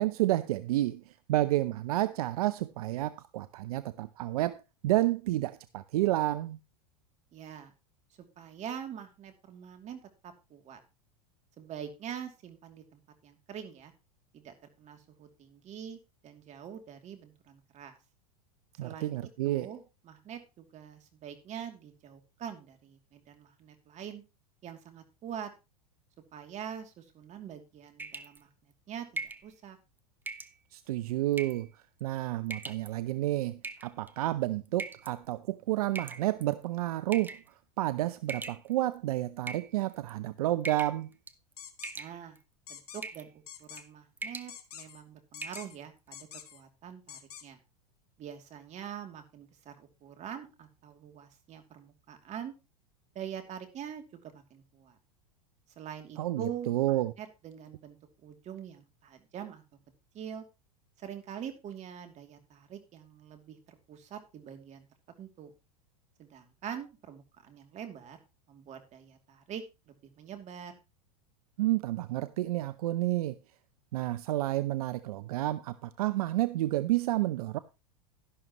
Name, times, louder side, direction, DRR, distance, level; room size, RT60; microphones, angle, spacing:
voice 1, 0.0-6.6 18.8-19.7 30.7-41.1 56.2-57.1 71.6-73.4 73.9-77.6, right 16 dB, 70° right, 0.7 m, -30 dB
voice 2, 7.3-7.7 8.4-10.8 11.6-13.9 14.3-18.0 18.8-19.2 19.4-24.2 24.6-25.5 26.3-28.5 28.9-29.8 42.0-42.4 42.7-43.3 43.6-47.6 48.2-52.5 53.1-55.0 55.8-59.6 60.1-60.4 61.0-64.9 65.2-65.5 66.2-68.2 68.5-70.7, right 8 dB, 35° right, 2.8 m, -44 dB
sound 1, 28.0-28.4 29.2-29.5 30.3-30.5 31.3-31.7 32.5-32.9 33.6-34.1 34.8-35.1 36.0-36.5 37.1-37.5 38.3-38.9 39.4-40.1 40.6-41.0 41.3-41.5 41.8-42.4 43.0-43.3 43.6-43.9 44.2-44.5 44.9-45.0 45.4-45.7, right 3 dB, 10° right, 0.9 m, -40 dB
sound 2, 41.6-41.9 42.7-43.0 43.5-43.8 44.5-45.0 45.3-45.8 46.1-46.6 47.1-47.4, left 9 dB, 80° left, 1.7 m, -47 dB
12.0 x 11.5 x 3.0 m
hypercardioid pair, 105°, 20 cm